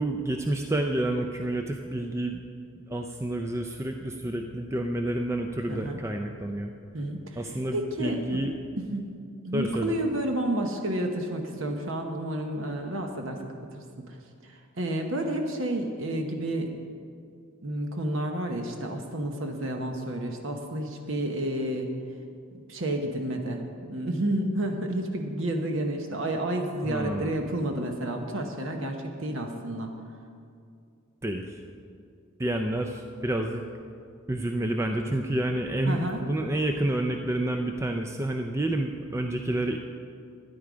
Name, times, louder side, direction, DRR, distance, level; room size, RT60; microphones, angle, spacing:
voice 1, 0.0-2.4 2.9-6.7 7.4-8.5 9.5-9.9 26.8-27.3 31.2-31.6 32.4-33.6 34.3-39.8, right 1 dB, 15° right, 4 dB, 0.4 m, -29 dB
voice 2, 5.7-6.0 6.9-7.4 7.7-8.4 8.8-9.1 9.4-14.1 14.4-16.7 17.6-21.9 22.5-23.6 23.9-29.9 35.9-36.2, right 1 dB, 60° right, 3 dB, 1.0 m, -30 dB
13.0 x 9.9 x 5.0 m, 2.4 s
head